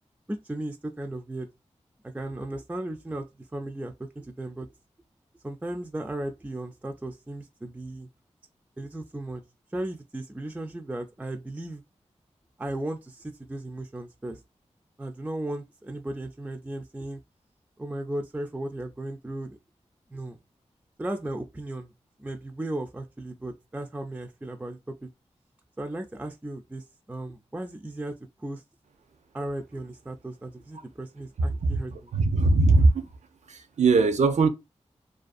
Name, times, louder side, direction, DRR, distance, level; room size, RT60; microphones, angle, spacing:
voice 1, 0.3-1.5 2.0-3.3 3.5-4.7 5.4-8.1 8.8-9.4 9.7-11.8 12.6-14.4 15.0-17.2 17.8-19.6 20.1-20.4 21.0-21.9 22.2-25.1 25.8-28.6 29.3-31.9, right 1 dB, 10° right, 0.3 m, -36 dB
voice 2, 31.4-33.1 33.5-34.5, right 3 dB, 75° right, 0.5 m, -21 dB
2.5 x 2.3 x 2.4 m
cardioid pair, 50°, 12 cm